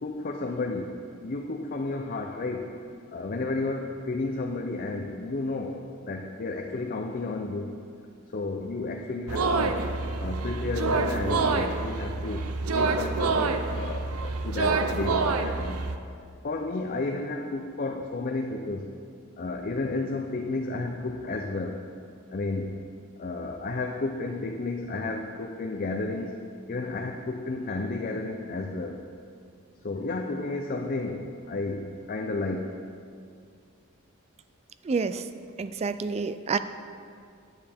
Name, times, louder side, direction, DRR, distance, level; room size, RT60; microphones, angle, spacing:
voice 1, 0.0-2.8 3.1-7.8 8.3-9.8 10.2-15.8 16.4-18.9 19.4-21.9 22.3-22.8 23.2-26.3 26.7-29.0 29.8-32.8, left 3 dB, 40° left, 3 dB, 0.5 m, -32 dB
sound 1, 9.3-16.0, right 3 dB, 90° right, 0.6 m, -27 dB
voice 2, 34.8-35.2 35.6-36.6, right 4 dB, 30° right, 12 dB, 0.3 m, -28 dB
9.9 x 9.0 x 3.5 m, 2.3 s
head